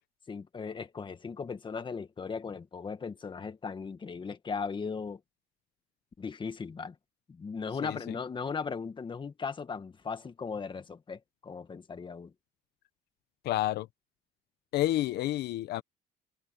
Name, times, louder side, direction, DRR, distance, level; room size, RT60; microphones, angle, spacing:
voice 1, 0.3-5.2 6.2-7.0 7.3-12.3, left 5 dB, 30° left, 1.9 m, -37 dB
voice 2, 13.4-13.9 14.7-15.8, left 14 dB, 75° left, 1.0 m, -29 dB
open air
cardioid pair, 110°, 17 cm